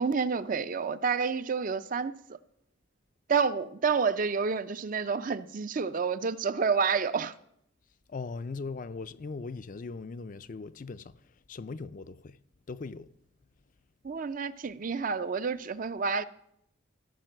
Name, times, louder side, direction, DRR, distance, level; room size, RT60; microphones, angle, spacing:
voice 1, 0.0-2.4 3.3-7.3 14.0-16.2, right 5 dB, 45° right, 0.5 m, -29 dB
voice 2, 8.1-11.1 11.5-12.4 12.7-13.1, left 4 dB, 40° left, 0.4 m, -39 dB
15.0 x 5.9 x 7.6 m
head